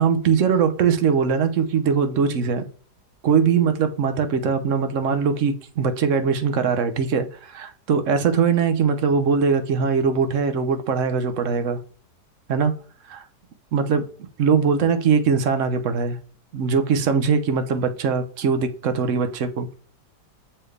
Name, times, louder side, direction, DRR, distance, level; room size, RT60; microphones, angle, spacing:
voice 1, 0.0-2.6 3.2-11.8 12.5-12.7 13.1-13.2 13.7-14.0 14.4-16.2 16.5-19.7, right 6 dB, 60° right, 0.9 m, -21 dB
6.7 x 4.4 x 3.2 m
omnidirectional pair, 1.8 m